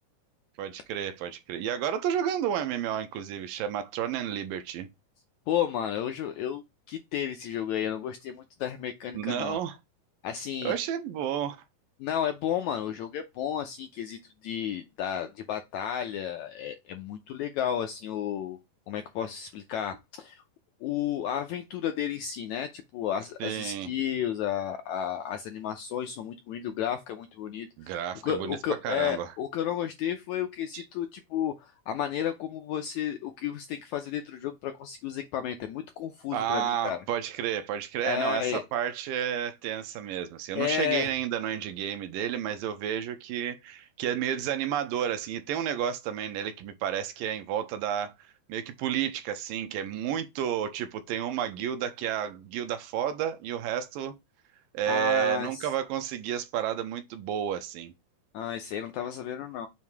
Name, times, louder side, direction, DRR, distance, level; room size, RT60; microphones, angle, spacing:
voice 1, 0.6-4.9 9.1-9.8 10.6-11.6 23.4-23.9 27.8-28.6 28.8-29.3 30.7-30.9 36.3-48.1 48.5-54.1 54.7-57.9, right 10 dB, 80° right, 2.5 m, -31 dB
voice 2, 5.5-9.6 10.2-10.7 12.0-18.6 18.9-20.4 20.8-28.0 28.2-37.0 38.0-38.6 40.6-41.1 54.9-55.7 58.3-59.7, left 9 dB, 80° left, 1.7 m, -32 dB
7.3 x 2.8 x 4.7 m
omnidirectional pair, 4.1 m